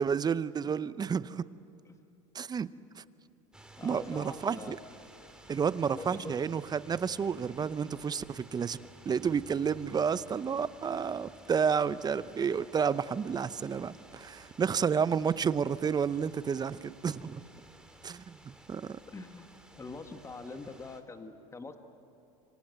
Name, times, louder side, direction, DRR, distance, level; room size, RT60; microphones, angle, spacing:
voice 1, 0.0-1.5 2.3-2.7 2.9-3.0 3.8-4.8 5.5-8.8 9.0-17.4 18.0-19.0, right 6 dB, 25° right, 16 dB, 0.7 m, -31 dB
sound 1, 3.5-21.0, right 2 dB, 5° right, 2.8 m, -55 dB
voice 2, 3.8-4.8 5.9-6.4 19.1-19.5 19.8-21.8, left 3 dB, 15° left, 7 dB, 1.7 m, -44 dB
26.5 x 25.5 x 8.0 m, 2.6 s
hypercardioid pair, 95°, 17 cm